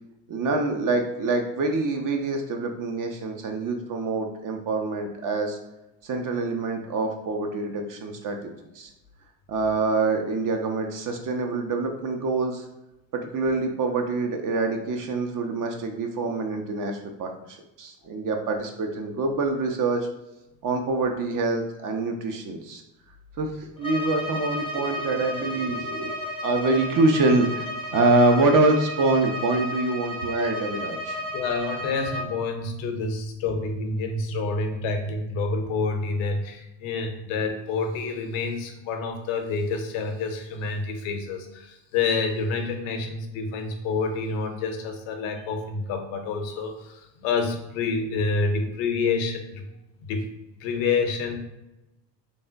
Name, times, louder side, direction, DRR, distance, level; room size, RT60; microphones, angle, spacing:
voice 1, 0.3-5.6 6.0-8.9 9.5-12.6 13.1-20.1 20.6-22.8 23.4-26.1 26.4-27.7 27.9-31.2, right 3 dB, 45° right, 4 dB, 0.6 m, -25 dB
Bowed string instrument, 23.8-32.4, left 1 dB, 10° left, 0.5 m, -33 dB
voice 2, 31.3-49.7 50.0-50.3 50.6-51.4, left 4 dB, 70° left, 5 dB, 0.7 m, -28 dB
3.4 x 2.1 x 2.5 m, 0.95 s
hypercardioid pair, 70°, 49 cm